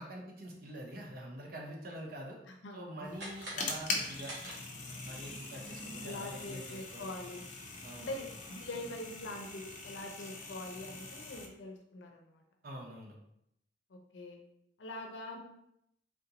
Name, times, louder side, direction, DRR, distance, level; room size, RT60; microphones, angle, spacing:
voice 1, 0.0-2.4 2.7-4.4 5.0-7.1 7.8-8.3 12.6-13.1, right 1 dB, 55° right, 0 dB, 0.7 m, -45 dB
voice 2, 2.6-3.1 6.0-7.4 8.0-12.4 13.9-14.4 14.8-15.4, left 1 dB, 85° left, 2 dB, 0.6 m, -44 dB
sound 1, 3.0-11.5, left 3 dB, 45° left, 0.5 m, -42 dB
sound 2, 3.1-5.1, right 1 dB, 75° right, 1.2 m, -47 dB
3.6 x 2.5 x 2.8 m, 0.77 s
head